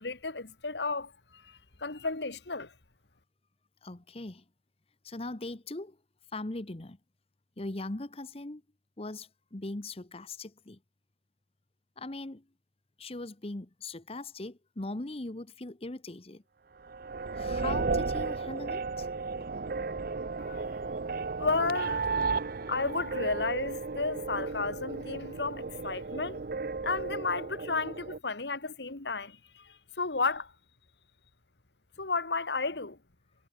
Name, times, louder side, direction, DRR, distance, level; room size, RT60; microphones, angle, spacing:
voice 1, 0.0-2.7 20.4-20.8 21.4-22.0 22.7-26.4 26.8-30.5 32.0-33.0, left 3 dB, 75° left, 1.9 m, -33 dB
voice 2, 3.8-4.4 5.0-6.0 6.3-7.0 7.6-8.6 9.0-10.8 12.0-12.4 13.0-16.4 17.3-19.1, left 2 dB, 35° left, 1.0 m, -40 dB
sound 1, 16.8-28.2, right 4 dB, 55° right, 0.6 m, -34 dB
head